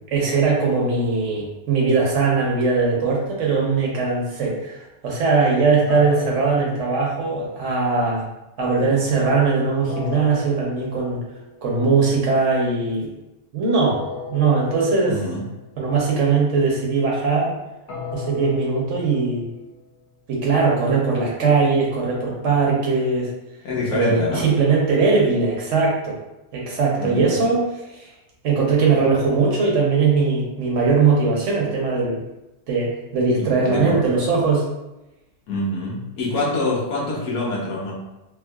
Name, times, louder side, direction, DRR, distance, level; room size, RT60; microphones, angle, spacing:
voice 1, 0.1-8.3 8.6-11.2 11.6-13.1 13.5-14.0 14.3-15.2 15.8-17.6 18.1-19.5 20.3-23.3 23.9-26.2 26.5-27.6 27.9-28.1 28.4-32.2 32.7-34.6, right 4 dB, 55° right, -3 dB, 0.9 m, -20 dB
sound 1, 5.9-7.9 9.9-11.7 13.9-15.7 17.9-20.1, left 4 dB, 90° left, 1.5 m, -37 dB
voice 2, 15.1-15.5 23.6-24.5 27.0-27.4 33.4-34.1 35.5-37.9, left 2 dB, 65° left, -5 dB, 1.4 m, -26 dB
4.6 x 2.0 x 2.3 m, 0.97 s
omnidirectional pair, 1.9 m